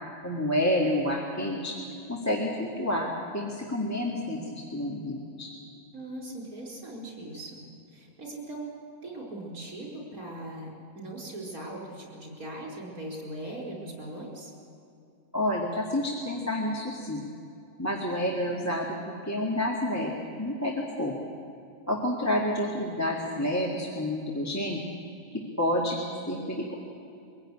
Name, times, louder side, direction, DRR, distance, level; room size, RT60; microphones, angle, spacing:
voice 1, 0.2-1.8 2.1-5.5 15.3-17.2 17.8-21.1 21.9-24.8 25.3-26.0 26.3-26.7, left 1 dB, 10° left, -2 dB, 2.0 m, -29 dB
voice 2, 5.9-7.6 7.9-14.5, right 1 dB, 75° right, -1 dB, 5.4 m, -40 dB
23.5 x 16.5 x 9.9 m, 2.6 s
omnidirectional pair, 1.5 m